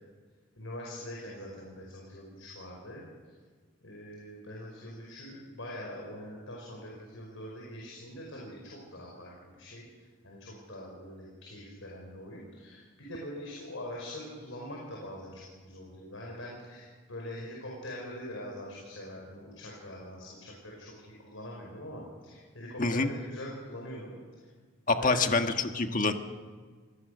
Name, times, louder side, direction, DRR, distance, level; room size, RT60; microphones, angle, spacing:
voice 1, 0.6-3.3 3.8-20.9 21.2-24.2 25.0-25.3, left 1 dB, 75° left, -3 dB, 5.4 m, -43 dB
voice 2, 22.8-23.1 24.9-26.1, left 3 dB, 40° left, 6 dB, 1.5 m, -26 dB
26.5 x 19.0 x 6.6 m, 1.5 s
head